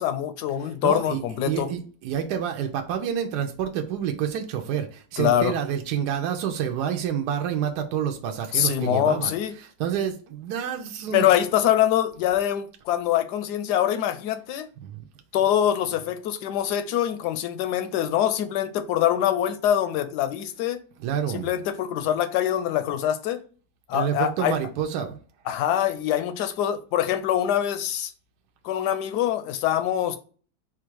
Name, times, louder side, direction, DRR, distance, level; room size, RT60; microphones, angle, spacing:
voice 1, 0.0-1.7 5.2-5.6 8.5-9.5 11.1-14.7 15.3-20.8 21.3-23.4 23.9-24.6 25.5-28.1 28.6-30.2, left 11 dB, 80° left, 1.1 m, -24 dB
voice 2, 0.8-9.3 9.8-11.3 14.8-15.0 21.0-21.5 23.9-25.2, right 9 dB, 75° right, 1.1 m, -28 dB
4.2 x 2.4 x 4.5 m
omnidirectional pair, 1.8 m